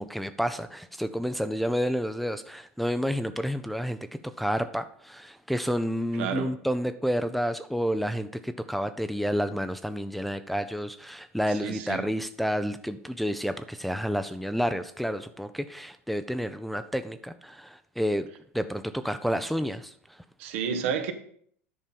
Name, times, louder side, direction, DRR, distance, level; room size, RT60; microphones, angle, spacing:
voice 1, 0.0-18.3 18.5-19.9, equal, ahead, 0.6 m, -30 dB
voice 2, 6.1-6.6 11.5-12.1 20.4-21.1, right 7 dB, 65° right, 1.2 m, -31 dB
10.5 x 5.4 x 5.3 m
hypercardioid pair, 80°, 7 cm